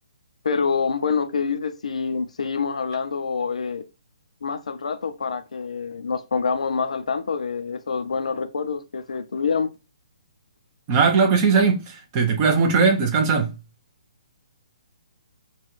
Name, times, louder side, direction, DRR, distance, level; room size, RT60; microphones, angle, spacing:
voice 1, 0.4-3.8 4.4-9.7, left 5 dB, 85° left, 0.5 m, -26 dB
voice 2, 10.9-13.5, right 5 dB, 20° right, 0.6 m, -19 dB
5.8 x 2.2 x 3.1 m
hypercardioid pair, 170°, 4 cm